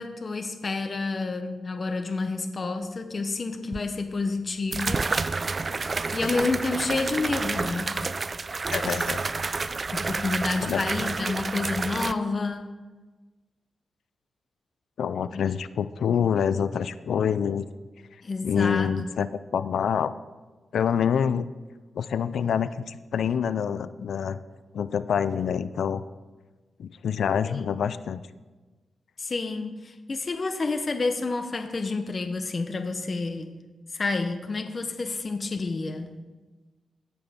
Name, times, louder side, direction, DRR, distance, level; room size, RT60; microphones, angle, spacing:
voice 1, 0.0-5.1 5.5-5.6 6.1-8.0 9.9-12.7 15.3-15.5 18.2-18.9 27.5-27.6 29.2-33.5 33.9-36.1, left 3 dB, 40° left, 6 dB, 0.7 m, -29 dB
sound 1, 3.7-3.8 4.7-12.1, right 4 dB, 40° right, 0.3 m, -29 dB
voice 2, 8.7-9.2 10.6-10.8 15.0-17.6 18.4-19.3 19.5-20.1 20.7-21.5 22.0-24.4 24.7-26.0 26.8-28.2, left 7 dB, 80° left, 14 dB, 0.3 m, -26 dB
17.0 x 6.0 x 3.5 m, 1.3 s
cardioid pair, 95°, 0 cm